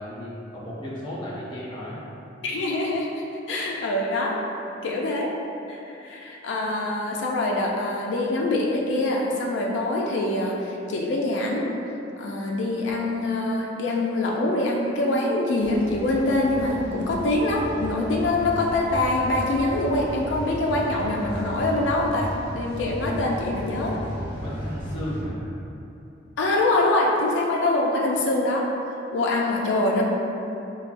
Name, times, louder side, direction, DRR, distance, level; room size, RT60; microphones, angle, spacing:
voice 1, 0.0-2.0 24.4-25.4, equal, 25° left, -8 dB, 0.7 m, -34 dB
voice 2, 2.4-3.1 3.5-4.4 4.8-5.3 5.7-11.7 12.2-24.0 26.4-28.7 29.1-30.0, left 2 dB, 70° left, -2 dB, 0.4 m, -24 dB
sound 1, 15.6-25.2, equal, 15° right, 0.7 m, -35 dB
4.4 x 2.2 x 2.5 m, 2.9 s
head